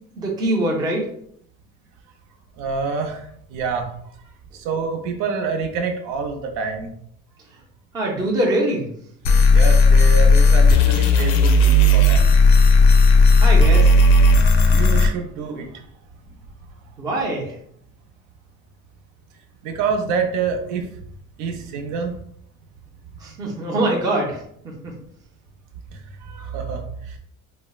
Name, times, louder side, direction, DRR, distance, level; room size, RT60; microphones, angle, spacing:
voice 1, 0.1-1.1 7.9-8.9 13.4-13.9 17.0-17.6 23.2-24.4 24.6-24.9, right 1 dB, 15° right, -2 dB, 0.4 m, -23 dB
voice 2, 2.6-3.9 4.5-6.9 9.5-12.2 14.7-15.8 19.6-20.9 21.4-22.1 25.9-27.2, right 5 dB, 70° right, 4 dB, 0.6 m, -27 dB
sound 1, 9.2-15.1, left 2 dB, 55° left, 0.5 m, -13 dB
4.1 x 2.0 x 2.3 m, 0.69 s
cardioid pair, 180°, 31 cm